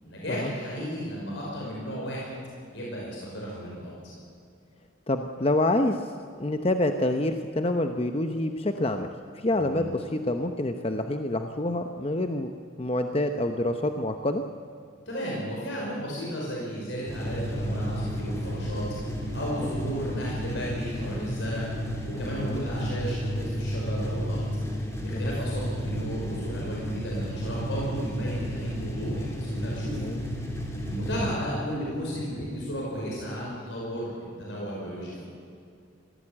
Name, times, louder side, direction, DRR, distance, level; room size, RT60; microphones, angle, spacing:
voice 1, 0.0-2.3 2.7-4.0 9.5-9.9 15.1-18.9 19.3-21.7 22.0-24.5 25.0-30.1 30.8-35.3, equal, 65° left, -4 dB, 5.4 m, -34 dB
voice 2, 5.1-6.0 6.4-12.5 12.8-14.4 19.6-19.7 22.4-22.6 25.1-25.3 30.0-30.2, left 1 dB, 30° left, 6 dB, 0.8 m, -27 dB
sound 1, 17.1-31.4, equal, 15° left, 2.8 m, -32 dB
22.0 x 16.5 x 8.8 m, 2.4 s
head